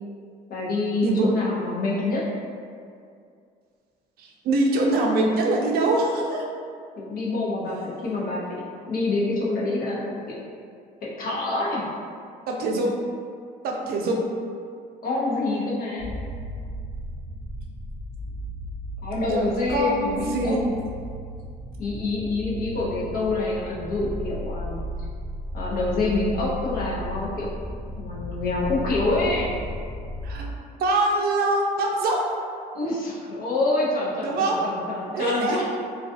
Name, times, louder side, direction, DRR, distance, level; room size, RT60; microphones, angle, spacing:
voice 1, 0.5-2.2 7.0-8.6 8.9-10.3 11.0-11.8 15.0-16.1 19.0-20.6 21.8-24.8 25.5-27.5 28.0-29.6 32.7-35.6, left 2 dB, 60° left, -5 dB, 0.7 m, -26 dB
voice 2, 4.2-6.4 12.5-13.0 13.6-14.2 19.1-20.6 30.2-32.2 34.2-34.6 35.1-35.6, right 2 dB, 65° right, -1 dB, 0.5 m, -24 dB
sound 1, 16.0-30.4, equal, 5° right, 0.6 m, -35 dB
2.4 x 2.3 x 2.4 m, 2.3 s
cardioid pair, 110°, 17 cm